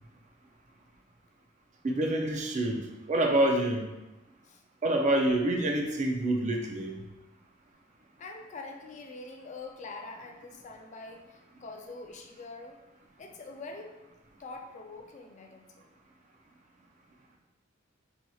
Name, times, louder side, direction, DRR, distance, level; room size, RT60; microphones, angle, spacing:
voice 1, 1.8-3.9 4.8-7.0, right 1 dB, 35° right, 2 dB, 0.4 m, -27 dB
voice 2, 8.2-12.8 13.2-14.0 14.4-15.9, left 3 dB, 35° left, 3 dB, 0.3 m, -44 dB
4.2 x 2.8 x 2.3 m, 1.0 s
head